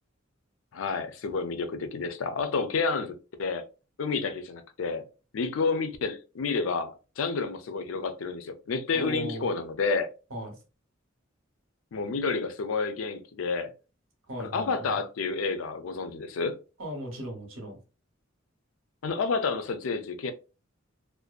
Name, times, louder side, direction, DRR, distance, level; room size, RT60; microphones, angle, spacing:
voice 1, 0.7-3.6 4.0-5.0 5.3-10.1 11.9-13.7 14.4-16.6 19.0-20.3, left 4 dB, 90° left, 0.4 m, -30 dB
voice 2, 8.9-9.5 10.3-10.6 14.3-15.0 16.8-17.8, right 1 dB, 85° right, 1.0 m, -37 dB
2.5 x 2.1 x 2.3 m
head